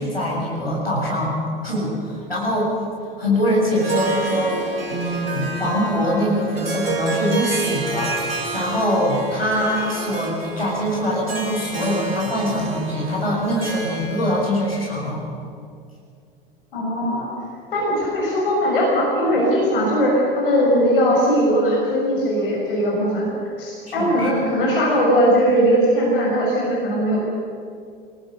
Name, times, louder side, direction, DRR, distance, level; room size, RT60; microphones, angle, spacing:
voice 1, 0.0-1.3 1.6-2.7 3.2-4.6 4.9-15.2 23.8-24.4, equal, 85° left, -4 dB, 7.9 m, -23 dB
Harp, 3.6-14.6, right 3 dB, 75° right, 3.6 m, -29 dB
voice 2, 16.7-17.3 17.7-23.3 23.6-27.2, equal, 65° left, -3 dB, 6.7 m, -19 dB
28.0 x 19.5 x 6.8 m, 2.3 s
figure-of-eight pair, 80°, 29 cm